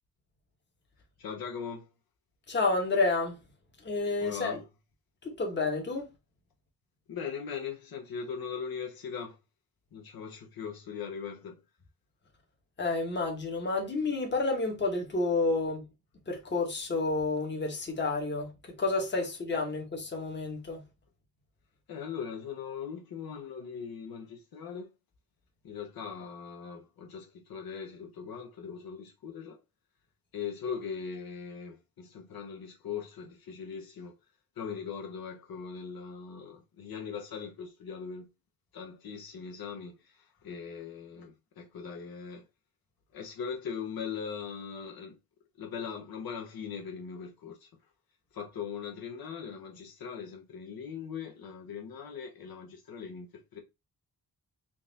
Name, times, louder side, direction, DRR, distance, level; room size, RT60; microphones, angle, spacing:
voice 1, 1.2-1.9 4.2-4.6 7.1-9.4 9.9-11.6 21.9-24.9 25.6-29.6 30.3-34.1 34.6-38.3 38.7-42.4 43.1-45.1 45.6-47.7 48.3-53.6, left 6 dB, 70° left, 0.8 m, -40 dB
voice 2, 2.5-3.4 3.8-4.6 5.2-6.0 12.8-15.9 16.3-18.5 18.8-20.8, left 3 dB, 30° left, 1.0 m, -30 dB
3.8 x 2.5 x 3.9 m
wide cardioid pair, 180°, 37 cm